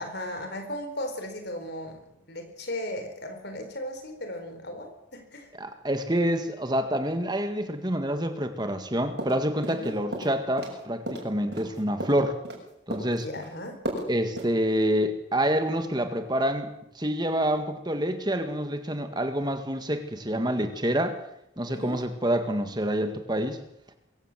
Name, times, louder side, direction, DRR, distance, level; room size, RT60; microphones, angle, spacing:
voice 1, 0.0-2.0 2.3-5.5 9.7-10.0 13.1-13.8 21.7-22.0, left 1 dB, 55° left, 7 dB, 4.3 m, -36 dB
voice 2, 5.5-12.4 12.9-13.3 14.1-16.7 17.0-21.2 21.6-23.6, equal, 20° right, 7 dB, 1.8 m, -27 dB
sound 1, 9.2-9.9 10.1-10.8 11.1-12.6 12.9-13.5 13.9-14.1 14.4-14.5, right 1 dB, 55° right, 6.6 m, -34 dB
23.0 x 16.0 x 7.5 m, 0.78 s
head